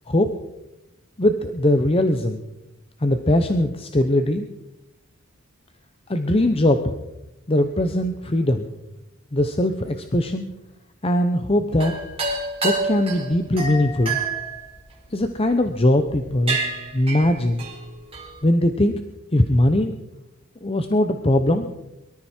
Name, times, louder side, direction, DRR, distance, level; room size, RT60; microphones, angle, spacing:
voice 1, 1.2-2.4 3.0-4.5 6.1-6.9 7.5-8.7 9.3-10.5 11.0-11.9 12.6-14.2 15.1-16.6 16.9-17.7 18.4-19.0 19.3-20.0 20.6-21.7, left 1 dB, 25° left, 7 dB, 0.8 m, -20 dB
sound 1, 11.7-15.5 16.0-16.2 16.5-18.4, right 3 dB, 25° right, 3.9 m, -28 dB
23.0 x 13.5 x 4.4 m, 0.93 s
head